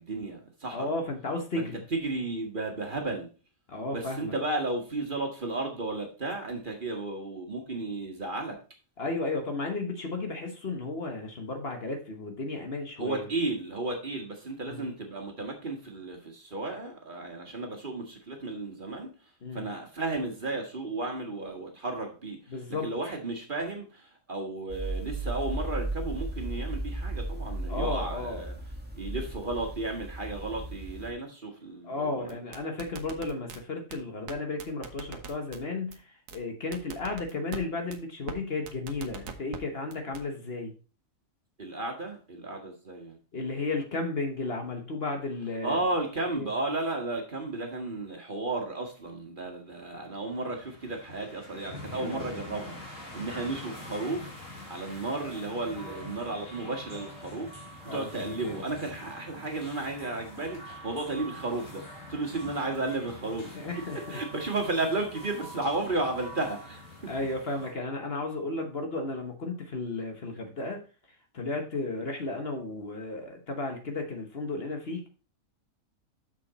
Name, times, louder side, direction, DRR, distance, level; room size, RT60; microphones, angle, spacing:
voice 1, 0.0-0.9 1.6-3.3 3.9-8.6 13.0-19.1 19.5-22.6 22.8-28.5 29.0-32.4 41.6-43.2 45.6-63.7 64.1-67.1, right 2 dB, 40° right, 1.7 m, -33 dB
voice 2, 0.7-1.8 3.7-4.3 9.0-13.3 14.7-14.8 19.4-19.7 22.5-22.9 27.7-28.4 31.8-36.0 36.3-40.7 43.3-45.8 46.3-46.5 51.9-52.4 57.9-58.6 63.5-64.2 67.1-70.8 71.3-75.1, left 3 dB, 50° left, 1.3 m, -34 dB
sound 1, 24.7-31.1, right 2 dB, 5° right, 1.4 m, -35 dB
sound 2, 32.3-33.6 33.9-34.0 34.3-34.4 34.6-35.6 35.9-36.0 36.3-36.4 36.7-37.6 37.9-38.0 38.3-38.4 38.7-39.6 39.9-40.2, right 7 dB, 70° right, 1.3 m, -41 dB
sound 3, 50.1-67.7, left 1 dB, 65° left, 2.4 m, -45 dB
6.7 x 6.3 x 4.1 m
omnidirectional pair, 1.4 m